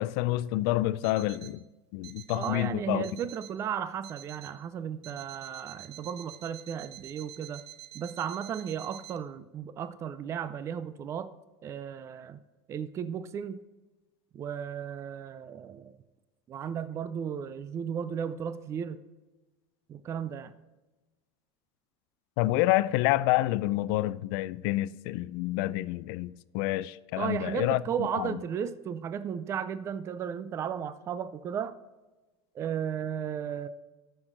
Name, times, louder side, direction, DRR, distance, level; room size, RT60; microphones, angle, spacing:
voice 1, 0.0-1.6 1.9-3.1 22.4-27.8 28.1-28.4, left 17 dB, 55° left, 0.4 m, -28 dB
Alarm, 1.0-1.6 2.0-2.6 3.0-3.6 4.0-4.6 5.0-9.2, right 15 dB, 85° right, 0.9 m, -48 dB
voice 2, 2.3-7.6 7.9-11.3 11.6-12.4 12.7-13.6 14.3-15.9 16.5-19.0 19.9-20.5 27.2-31.7 32.5-33.7, right 8 dB, 20° right, 0.4 m, -35 dB
13.5 x 6.3 x 3.9 m
supercardioid pair, 155°, 14 cm